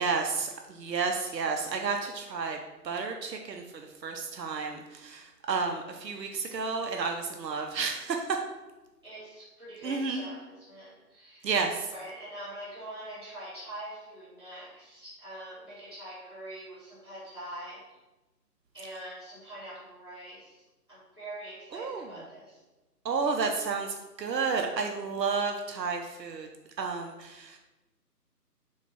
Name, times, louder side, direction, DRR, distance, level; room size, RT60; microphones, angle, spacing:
voice 1, 0.0-2.6 2.8-8.4 9.8-10.3 11.4-11.9 21.7-22.1 23.0-23.9 24.2-26.5 26.8-27.6, right 5 dB, 90° right, 3 dB, 0.6 m, -31 dB
voice 2, 9.0-11.5 11.9-18.0 18.7-22.6 23.3-23.7, right 1 dB, 15° right, -10 dB, 1.0 m, -44 dB
4.2 x 2.3 x 3.3 m, 1.1 s
figure-of-eight pair, 155°, 49 cm